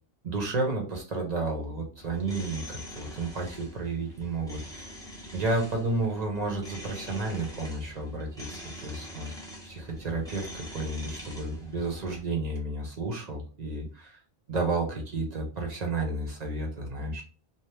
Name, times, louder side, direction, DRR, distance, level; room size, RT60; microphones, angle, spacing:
voice 1, 0.2-4.9 5.3-9.3 9.6-14.2 14.5-17.2, right 2 dB, 45° right, 1 dB, 0.8 m, -32 dB
sound 1, 2.0-12.2, equal, 5° left, 0.5 m, -44 dB
2.7 x 2.0 x 3.2 m, 0.37 s
omnidirectional pair, 1.1 m